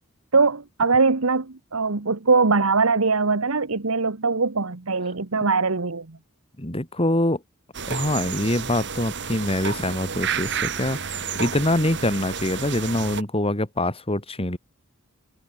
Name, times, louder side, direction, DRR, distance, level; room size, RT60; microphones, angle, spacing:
voice 1, 0.3-6.2, right 4 dB, 75° right, 1.3 m, -21 dB
voice 2, 6.6-7.4 7.9-14.6, left 1 dB, 25° left, 3.6 m, -24 dB
sound 1, 7.7-13.2, right 6 dB, 55° right, 6.2 m, -31 dB
head